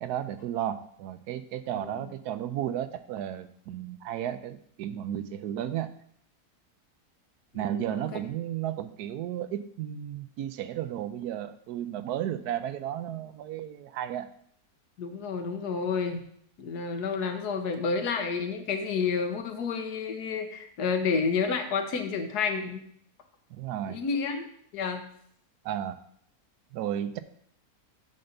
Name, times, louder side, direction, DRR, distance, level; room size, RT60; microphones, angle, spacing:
voice 1, 0.0-5.9 7.5-14.3 23.5-24.0 25.6-26.0 26.7-27.2, right 11 dB, 85° right, 12 dB, 1.1 m, -33 dB
voice 2, 1.8-2.1 7.5-8.2 15.0-16.2 16.6-22.8 23.9-25.0, left 5 dB, 90° left, 6 dB, 1.5 m, -30 dB
7.8 x 3.9 x 6.6 m, 0.65 s
omnidirectional pair, 1.7 m